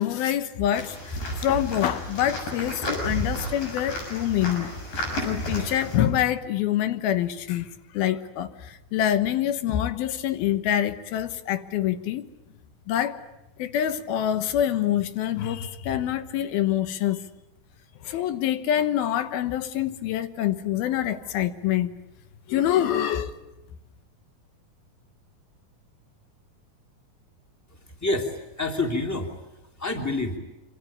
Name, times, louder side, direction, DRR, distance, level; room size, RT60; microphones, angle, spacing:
voice 1, 0.0-4.7 5.2-12.3 12.9-13.2 13.6-17.2 18.0-21.9 22.5-23.4, left 11 dB, 80° left, 3.1 m, -26 dB
sound 1, 0.8-6.0, equal, 60° left, 8.1 m, -32 dB
voice 2, 27.7-29.3 29.8-30.4, left 2 dB, 5° left, 2.7 m, -28 dB
26.5 x 25.5 x 8.8 m
omnidirectional pair, 4.3 m